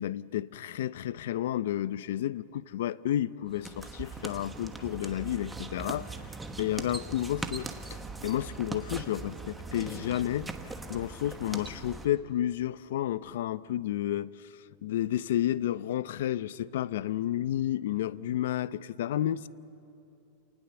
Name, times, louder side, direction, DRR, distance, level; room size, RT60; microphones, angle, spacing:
voice 1, 0.0-6.1 6.6-10.5 10.9-14.3 14.8-19.5, left 12 dB, 75° left, 0.6 m, -31 dB
sound 1, 3.5-12.1, right 3 dB, 10° right, 1.2 m, -40 dB
29.0 x 19.0 x 7.1 m
supercardioid pair, 145°, 0 cm